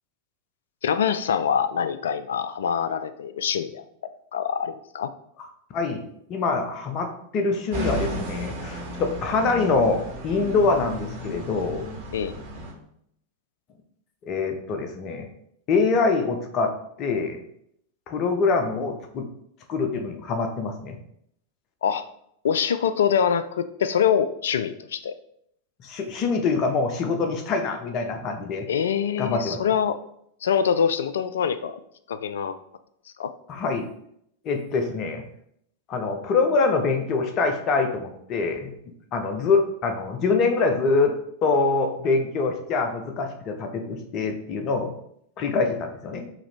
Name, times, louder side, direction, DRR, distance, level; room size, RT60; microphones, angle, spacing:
voice 1, 0.8-3.8 4.3-5.1 12.1-12.3 21.8-22.0 22.4-25.1 28.7-30.0 30.4-31.8 32.1-32.5 33.2-33.3, left 7 dB, 65° left, 12 dB, 0.3 m, -24 dB
voice 2, 6.3-11.9 14.3-15.3 15.7-16.7 17.0-17.4 18.1-19.3 19.7-21.0 25.8-28.7 29.2-29.6 33.5-33.9 34.4-35.2 35.9-38.7 39.1-41.1 41.4-44.9 45.4-46.3, left 4 dB, 35° left, 5 dB, 0.7 m, -24 dB
sound 1, 7.7-12.7, equal, 45° right, 1.6 m, -34 dB
4.8 x 2.9 x 3.3 m, 0.73 s
figure-of-eight pair, 90°, 0 cm